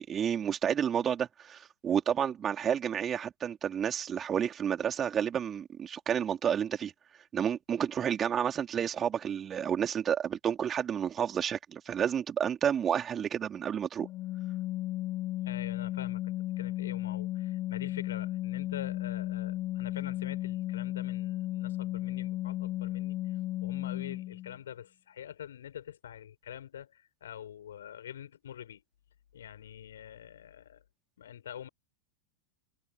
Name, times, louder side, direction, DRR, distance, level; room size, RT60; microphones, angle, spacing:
voice 1, 0.0-6.9 7.3-14.1, right 8 dB, 25° right, 4.1 m, -30 dB
Organ, 14.0-24.6, left 15 dB, 35° left, 2.1 m, -34 dB
voice 2, 15.5-23.2 23.6-28.8 29.3-30.8 31.2-31.7, left 10 dB, 65° left, 7.2 m, -45 dB
figure-of-eight pair, 90°, 0 cm